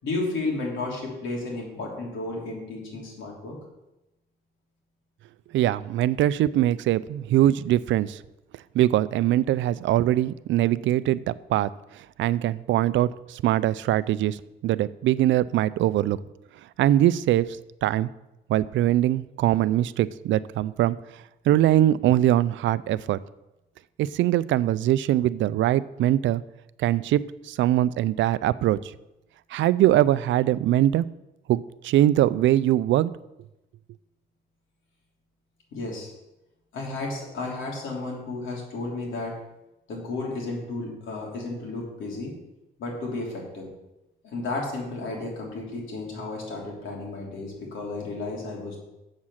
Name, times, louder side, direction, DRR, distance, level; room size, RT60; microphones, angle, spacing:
voice 1, 0.0-3.6 35.7-36.1 36.7-39.4 39.9-42.3 42.8-43.7 44.2-48.8, left 2 dB, 75° left, -2 dB, 3.3 m, -33 dB
voice 2, 5.5-8.2 8.7-11.7 12.0-16.2 16.8-17.5 17.8-18.1 18.5-21.0 21.5-23.2 24.0-26.4 26.8-28.8 29.5-31.1 31.5-33.1, right 13 dB, 75° right, 17 dB, 0.4 m, -22 dB
7.3 x 7.3 x 6.4 m, 0.95 s
cardioid pair, 90°, 20 cm